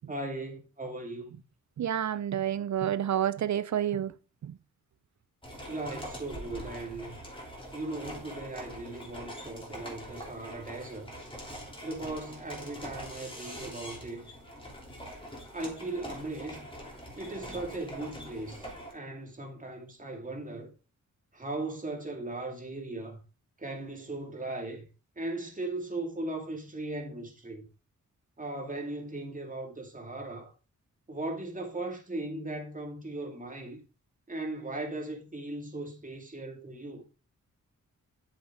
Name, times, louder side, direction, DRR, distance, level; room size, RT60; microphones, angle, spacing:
voice 1, 0.1-1.3 5.7-7.2 7.7-11.1 11.8-14.2 15.5-16.7 17.2-20.7 21.3-23.2 23.6-24.9 25.2-27.7 28.4-30.5 31.1-33.8 34.3-37.0, right 2 dB, 25° right, 2.4 m, -38 dB
voice 2, 1.8-4.1 4.4-4.6, right 10 dB, 60° right, 0.6 m, -29 dB
sound 1, 5.4-18.9, equal, 15° left, 3.3 m, -44 dB
7.7 x 7.2 x 3.7 m
wide cardioid pair, 95°, 32 cm